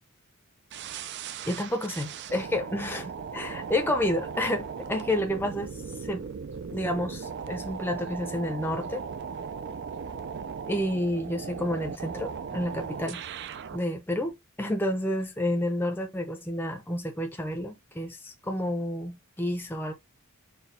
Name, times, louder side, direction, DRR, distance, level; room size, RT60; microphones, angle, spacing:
sound 1, 0.7-13.8, right 6 dB, 50° right, 0.4 m, -38 dB
voice 1, 1.5-3.0 3.3-6.2 6.7-9.0 10.7-13.2 13.7-19.9, left 1 dB, 10° left, 0.6 m, -30 dB
4.4 x 2.2 x 3.4 m
head